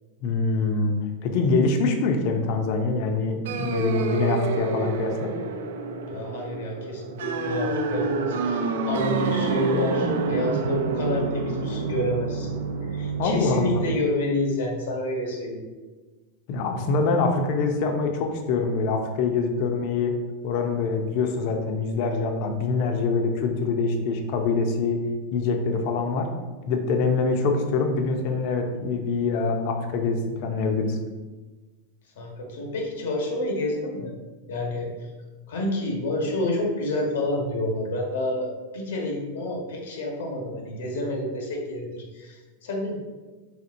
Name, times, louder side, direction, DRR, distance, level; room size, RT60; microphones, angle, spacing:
voice 1, 0.2-1.0 1.2-5.3 13.2-13.8 16.5-20.1 20.4-25.0 25.3-26.3 26.7-31.0, left 4 dB, 45° left, 4 dB, 0.5 m, -24 dB
sound 1, 3.5-14.0, right 4 dB, 80° right, 0.4 m, -28 dB
voice 2, 6.1-12.5 12.8-15.7 32.2-34.2 34.5-35.1 35.5-42.9, left 1 dB, 90° left, 0 dB, 1.1 m, -29 dB
4.2 x 3.6 x 2.6 m, 1.3 s
supercardioid pair, 170°, 0 cm